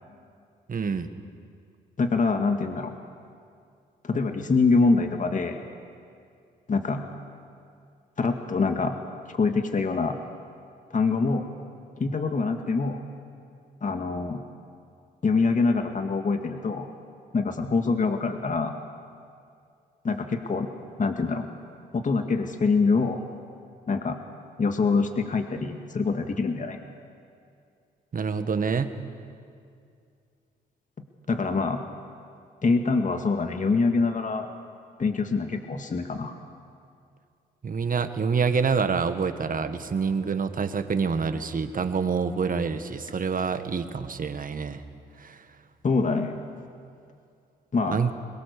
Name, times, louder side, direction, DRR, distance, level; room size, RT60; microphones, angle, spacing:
voice 1, 0.7-1.1 28.1-29.0 37.6-44.8 45.2-45.4 47.9-48.1, right 5 dB, 45° right, 9 dB, 1.7 m, -27 dB
voice 2, 2.0-2.9 4.0-5.6 6.7-7.0 8.2-9.0 9.3-10.2 10.9-11.5 12.0-13.0 13.8-14.4 15.2-16.9 17.3-18.7 20.0-20.7 21.0-21.5 21.9-23.2 23.9-24.2 24.6-26.8 31.3-31.8 32.6-34.5 35.0-36.4 45.8-46.4 47.7-48.0, left 4 dB, 40° left, 5 dB, 2.0 m, -25 dB
23.0 x 22.0 x 6.9 m, 2.4 s
hypercardioid pair, 50°, 20 cm